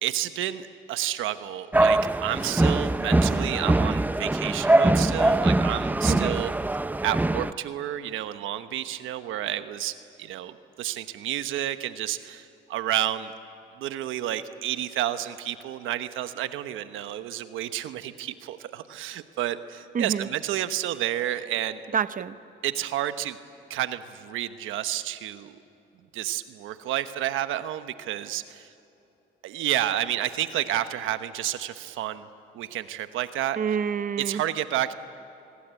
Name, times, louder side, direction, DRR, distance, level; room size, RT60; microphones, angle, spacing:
voice 1, 0.0-6.5 7.0-13.3 13.8-21.8 22.6-23.4 23.7-25.6 26.1-28.7 29.4-32.3 32.5-33.6 34.2-34.9, right 12 dB, 90° right, 11 dB, 1.1 m, -30 dB
sound 1, 1.7-7.5, right 2 dB, 10° right, 0.5 m, -22 dB
voice 2, 6.1-6.4 19.9-20.3 21.9-22.4 33.6-34.4, right 7 dB, 45° right, 14 dB, 0.8 m, -27 dB
27.5 x 22.0 x 8.3 m, 2.8 s
cardioid pair, 90°, 20 cm